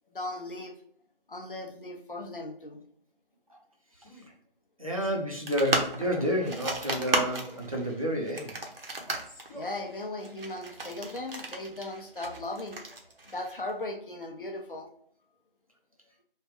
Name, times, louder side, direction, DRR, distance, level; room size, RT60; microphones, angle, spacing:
voice 1, 0.1-0.8 1.3-2.8 9.5-12.8 13.3-14.9, left 2 dB, 60° left, 3 dB, 0.7 m, -37 dB
Male speech man speaking, 3.9-4.3 5.0-5.3 6.0-6.4 7.4-7.7 9.0-9.8, equal, 5° right, 1.0 m, -48 dB
voice 2, 4.8-8.5, equal, 35° right, -1 dB, 0.6 m, -30 dB
sound 1, 5.5-13.7, right 2 dB, 70° right, 0.9 m, -34 dB
3.3 x 2.3 x 3.3 m, 0.64 s
figure-of-eight pair, 170°, 30 cm